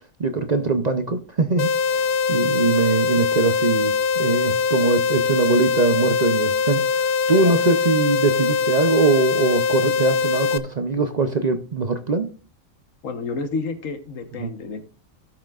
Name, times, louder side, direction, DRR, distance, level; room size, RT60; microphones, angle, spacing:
voice 1, 0.2-12.3 14.4-14.5, right 3 dB, 40° right, 0.7 m, -22 dB
sound 1, 1.6-10.6, left 5 dB, 60° left, 0.7 m, -22 dB
voice 2, 13.0-14.8, left 4 dB, 80° left, 1.5 m, -30 dB
16.5 x 5.8 x 2.4 m
omnidirectional pair, 1.3 m